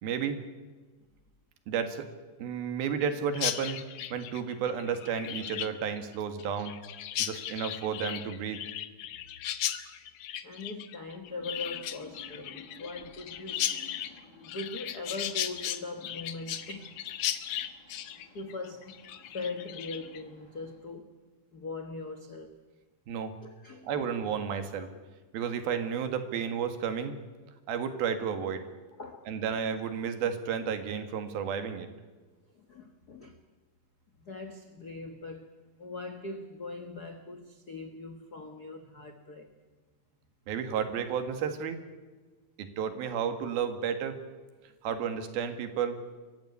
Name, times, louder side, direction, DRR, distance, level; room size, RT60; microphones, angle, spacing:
voice 1, 0.0-0.5 1.7-2.1 2.4-3.8 4.1-6.8 7.2-8.6 23.1-23.3 23.8-24.9 25.3-27.2 27.7-28.6 29.3-31.9 40.5-41.8 42.6-44.2 44.8-46.1, right 7 dB, 85° right, 8 dB, 3.6 m, -32 dB
Chirp tweet, 3.3-20.2, left 11 dB, 70° left, 1.7 m, -36 dB
voice 2, 10.4-13.7 14.4-17.0 18.3-21.1 21.5-22.6 23.4-23.9 29.0-29.3 32.5-33.4 34.2-35.5 35.8-39.5, left 3 dB, 90° left, 6 dB, 0.8 m, -41 dB
sound 1, 11.2-20.8, left 1 dB, 40° left, 8.2 m, -55 dB
23.5 x 15.5 x 9.8 m, 1.3 s
omnidirectional pair, 4.2 m